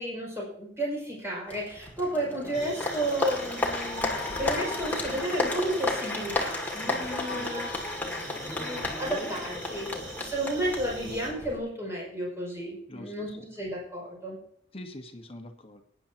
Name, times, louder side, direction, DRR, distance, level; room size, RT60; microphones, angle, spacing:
voice 1, 0.0-7.9 8.4-14.4, right 1 dB, 15° right, -4 dB, 5.8 m, -32 dB
Applause, 1.5-11.6, left 2 dB, 10° left, 2.3 m, -33 dB
sound 1, 2.5-11.3, right 2 dB, 40° right, 3.6 m, -44 dB
voice 2, 12.9-13.4 14.7-15.8, left 1 dB, 30° left, 5 dB, 1.3 m, -44 dB
22.5 x 10.5 x 2.9 m, 0.67 s
head